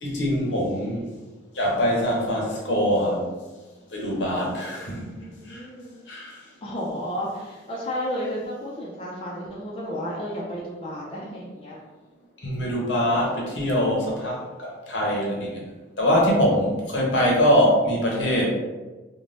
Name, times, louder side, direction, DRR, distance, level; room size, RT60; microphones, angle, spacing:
voice 1, 0.0-1.1 1.5-3.3 3.9-5.1 5.5-5.6 6.1-6.4 12.4-15.6 16.0-18.5, equal, 70° left, -2 dB, 0.8 m, -23 dB
voice 2, 5.1-6.0 6.6-11.8, equal, 30° left, -4 dB, 0.4 m, -32 dB
2.5 x 2.1 x 3.2 m, 1.2 s
head